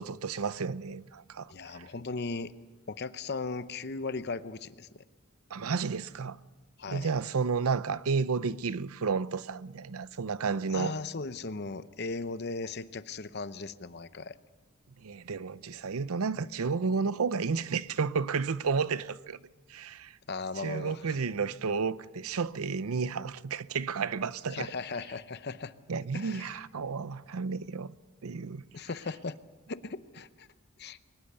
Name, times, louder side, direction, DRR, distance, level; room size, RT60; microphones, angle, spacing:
voice 1, 0.0-1.8 5.5-6.4 6.9-10.9 15.0-19.4 19.7-20.2 20.6-24.7 25.9-27.9 28.2-28.6, right 5 dB, 90° right, 0.6 m, -32 dB
voice 2, 1.5-2.5 2.9-5.0 6.8-7.1 10.7-14.4 20.3-21.2 24.5-25.7 26.1-26.6 28.7-29.4 29.7-30.5 30.8-31.0, left 4 dB, 50° left, 0.8 m, -37 dB
22.5 x 20.0 x 6.8 m
head